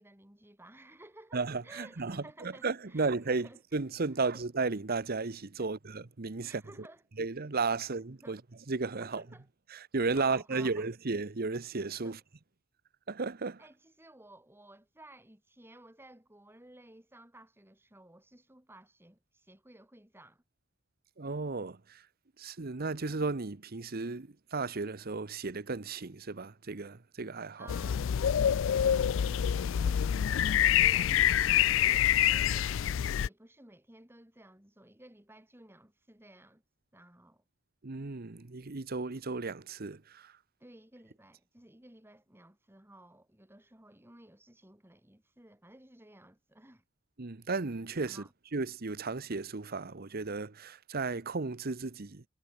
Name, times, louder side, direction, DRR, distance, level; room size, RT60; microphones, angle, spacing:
voice 1, 0.0-3.6 4.2-4.4 5.6-5.7 6.4-7.0 8.2-8.4 9.0-9.5 10.1-10.9 12.0-12.2 13.6-20.4 27.6-36.6 36.9-37.4 40.6-46.8 48.1-48.3, right 1 dB, 10° right, 3.2 m, -56 dB
voice 2, 1.3-6.6 7.2-8.4 8.7-9.2 9.7-12.2 13.1-13.6 21.2-22.0 22.4-27.7 37.8-40.3 47.2-48.2 48.5-52.2, right 4 dB, 50° right, 1.0 m, -34 dB
sound 1, 27.7-33.3, left 10 dB, 70° left, 0.4 m, -26 dB
head